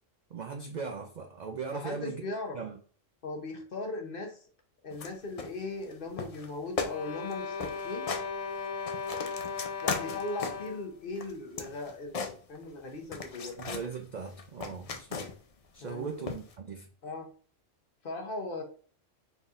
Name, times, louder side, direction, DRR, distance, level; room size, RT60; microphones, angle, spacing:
voice 1, 0.3-2.2 2.5-2.8 13.6-15.2 15.7-16.9, right 5 dB, 65° right, 4 dB, 0.4 m, -38 dB
voice 2, 1.7-2.6 3.2-4.5 4.8-8.1 9.8-13.6 15.8-16.3 17.0-17.3 18.0-18.6, left 2 dB, 50° left, 2 dB, 0.9 m, -38 dB
sound 1, 4.9-5.1 5.4-5.9 6.2-6.5 6.8-7.0 7.2-7.3 7.6-8.3 8.7-10.7 11.2-12.8 13.1-13.9 14.3-15.5 16.3-16.5, left 5 dB, 65° left, 0.3 m, -37 dB
sound 2, 6.8-10.9, left 5 dB, 85° left, 1.2 m, -37 dB
4.1 x 3.6 x 2.5 m, 0.43 s
omnidirectional pair, 1.3 m